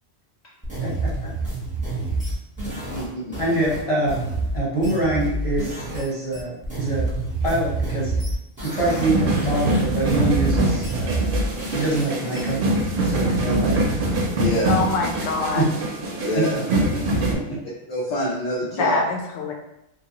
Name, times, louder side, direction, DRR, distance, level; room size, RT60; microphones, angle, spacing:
sound 1, 0.6-6.1 6.3-9.1 9.3-12.4, right 2 dB, 10° right, 0.7 m, -28 dB
voice 1, 0.8-1.3 3.4-4.2 4.5-7.1 7.4-8.1 8.6-11.3 11.7-12.6 13.0-13.9 15.5-15.7 16.3-16.5 17.1-17.6, right 2 dB, 30° left, -8 dB, 0.9 m, -25 dB
voice 2, 2.7-3.3 14.4-14.7 16.2-16.6 17.9-19.0, left 1 dB, 50° left, -7 dB, 0.5 m, -26 dB
sound 2, 8.8-17.3, right 1 dB, 60° right, 0.6 m, -24 dB
voice 3, 14.7-15.8 18.8-19.5, left 3 dB, 75° left, 1 dB, 0.9 m, -24 dB
2.8 x 2.3 x 2.8 m, 0.85 s
omnidirectional pair, 1.2 m